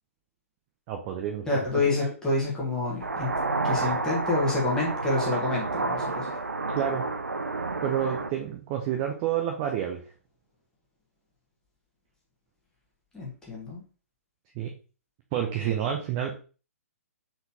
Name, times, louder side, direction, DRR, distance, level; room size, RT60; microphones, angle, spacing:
voice 1, 0.9-2.1 6.7-7.1 7.8-10.1 14.5-14.7 15.3-16.4, right 9 dB, 30° right, 2 dB, 0.6 m, -29 dB
voice 2, 1.5-3.3 3.6-6.3 13.1-13.8, left 2 dB, 10° left, -4 dB, 1.4 m, -28 dB
sound 1, 3.0-8.3, right 3 dB, 80° right, 0.5 m, -30 dB
4.1 x 3.9 x 2.8 m, 0.37 s
figure-of-eight pair, 120°, 8 cm